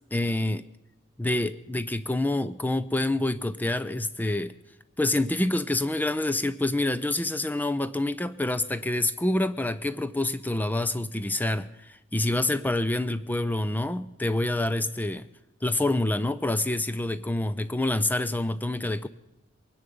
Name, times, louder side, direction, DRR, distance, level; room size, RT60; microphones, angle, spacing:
voice 1, 0.1-0.6 1.2-4.5 5.0-15.3 15.6-19.1, left 2 dB, 10° left, 13 dB, 0.4 m, -27 dB
22.5 x 10.0 x 5.3 m, 0.93 s
head